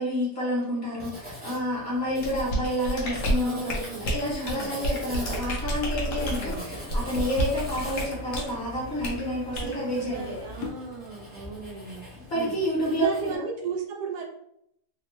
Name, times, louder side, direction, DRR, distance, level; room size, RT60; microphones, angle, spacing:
voice 1, 0.0-3.8 4.1-10.4 12.3-13.4, equal, 40° left, -6 dB, 1.3 m, -29 dB
Writing, 1.0-13.4, equal, 5° right, 0.8 m, -42 dB
sound 1, 2.2-8.5 9.0-9.2 9.5-9.8, equal, 60° left, 1.0 m, -30 dB
voice 2, 3.3-4.8 6.0-6.7 9.5-12.6 12.9-14.3, right 5 dB, 75° right, 1 dB, 1.1 m, -36 dB
sound 2, 5.1-10.7, left 2 dB, 85° left, 1.2 m, -41 dB
3.4 x 2.0 x 3.1 m, 0.75 s
omnidirectional pair, 1.8 m